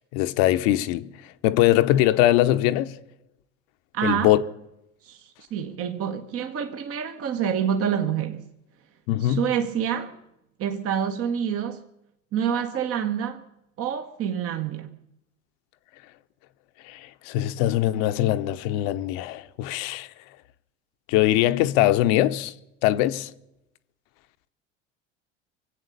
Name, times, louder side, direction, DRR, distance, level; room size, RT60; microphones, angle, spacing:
voice 1, 0.1-1.1 1.4-3.0 4.0-4.4 9.1-9.5 16.8-20.1 21.1-22.5 22.8-23.3, left 14 dB, 55° left, 0.9 m, -22 dB
voice 2, 3.9-4.3 5.0-8.5 9.2-10.2 10.6-11.8 12.3-13.4 13.8-14.9, right 8 dB, 40° right, 1.1 m, -27 dB
24.0 x 8.2 x 6.7 m
hypercardioid pair, 80°, 37 cm